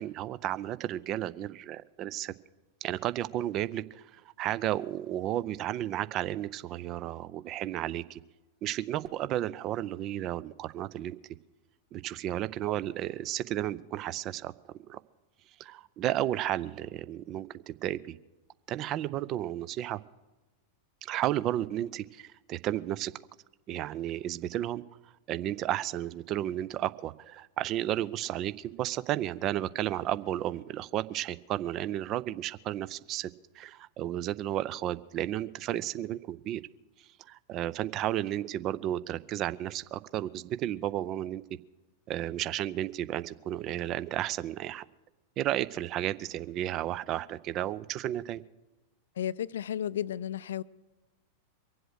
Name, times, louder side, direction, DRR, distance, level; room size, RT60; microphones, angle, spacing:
voice 1, 0.0-2.3 2.8-8.2 8.6-11.2 11.9-15.0 15.6-18.2 18.7-20.0 21.0-23.1 23.7-24.8 25.3-36.6 37.3-41.4 42.1-44.8 45.4-48.4, right 12 dB, 35° right, 0.5 m, -33 dB
voice 2, 49.2-50.6, left 10 dB, 60° left, 0.4 m, -33 dB
23.5 x 7.9 x 6.4 m
figure-of-eight pair, 90°, 0 cm